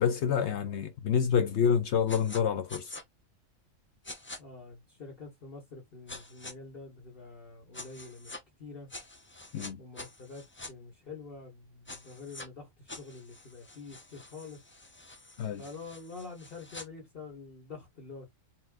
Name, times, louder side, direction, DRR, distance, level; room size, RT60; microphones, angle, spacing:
voice 1, 0.0-2.9 9.5-9.8 15.4-15.6, left 7 dB, 65° left, 0.9 m, -27 dB
sound 1, 2.1-2.4 2.7-3.0 4.0-4.4 6.1-6.5 7.7-8.4 8.9-10.7 11.9-12.5 12.9-16.9, left 2 dB, 20° left, 0.3 m, -46 dB
voice 2, 4.4-8.9 9.8-14.6 15.6-18.3, left 4 dB, 45° left, 1.6 m, -46 dB
4.2 x 3.7 x 2.4 m
omnidirectional pair, 1.3 m